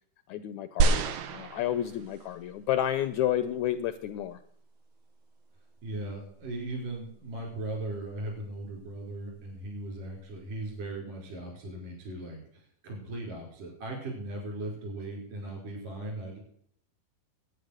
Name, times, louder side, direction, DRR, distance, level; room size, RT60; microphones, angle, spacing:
voice 1, 0.3-4.4, left 11 dB, 80° left, 12 dB, 1.7 m, -31 dB
sound 1, 0.8-2.3 3.1-3.2, right 4 dB, 90° right, 2.9 m, -28 dB
voice 2, 5.8-16.4, right 1 dB, 70° right, -1 dB, 6.4 m, -38 dB
11.5 x 9.4 x 6.4 m, 0.66 s
omnidirectional pair, 4.0 m